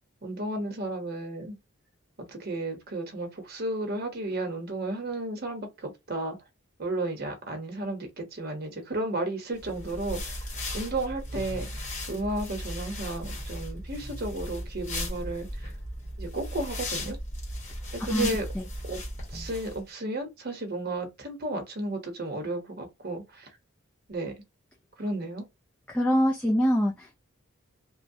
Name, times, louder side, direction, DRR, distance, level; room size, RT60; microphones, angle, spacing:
voice 1, 0.2-1.6 2.2-6.4 6.8-15.7 16.2-17.2 17.9-18.5 18.9-19.0 19.3-23.5 24.1-24.3 25.0-25.5, right 2 dB, 45° right, 0.9 m, -33 dB
sound 1, 9.6-19.8, left 1 dB, 35° left, 1.2 m, -36 dB
voice 2, 25.9-27.2, equal, 5° left, 0.3 m, -24 dB
3.0 x 2.1 x 2.6 m
head